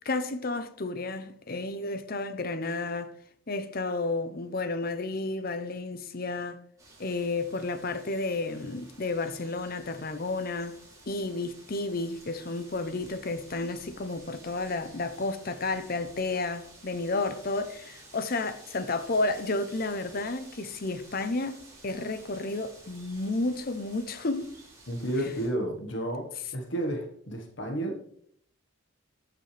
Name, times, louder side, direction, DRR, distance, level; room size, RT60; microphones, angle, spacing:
voice 1, 0.0-3.1 3.5-6.6 7.0-10.8 11.1-24.5, left 2 dB, 45° left, 0.7 m, -31 dB
sound 1, 6.8-25.5, right 2 dB, 15° right, 3.0 m, -53 dB
voice 2, 24.9-28.0, right 1 dB, 60° left, 1.5 m, -32 dB
14.5 x 6.0 x 3.4 m
head